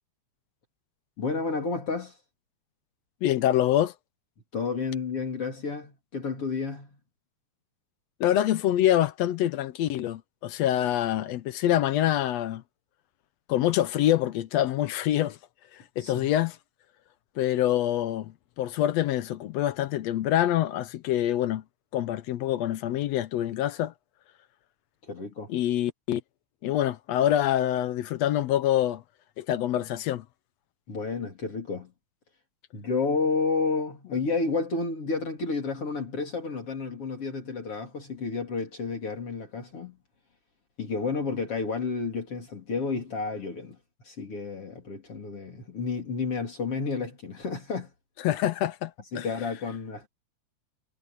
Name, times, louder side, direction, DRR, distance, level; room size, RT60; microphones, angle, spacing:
voice 1, 1.2-2.1 4.5-7.0 16.0-16.3 25.1-25.5 30.9-31.9 32.7-40.0 40.8-43.8 44.0-47.9 49.1-50.1, left 4 dB, 50° left, 4.2 m, -31 dB
voice 2, 3.2-3.9 8.2-12.6 13.5-15.4 16.0-16.6 17.4-21.6 21.9-23.9 25.5-26.2 26.6-29.0 29.4-30.2 48.2-49.3, left 12 dB, 75° left, 1.7 m, -25 dB
omnidirectional pair, 3.4 m